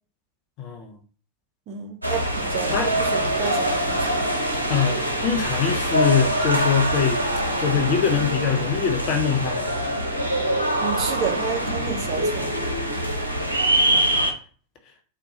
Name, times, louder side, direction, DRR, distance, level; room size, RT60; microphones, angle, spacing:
voice 1, 0.6-0.9 2.7-2.9 4.7-7.2 7.6-9.7, left 7 dB, 40° left, 0.7 m, -23 dB
voice 2, 1.7-4.2 10.8-12.5, right 6 dB, 40° right, 0.6 m, -31 dB
sound 1, 2.0-14.3, right 1 dB, 85° right, 0.6 m, -24 dB
4.0 x 2.2 x 2.8 m
figure-of-eight pair, 90°, 0 cm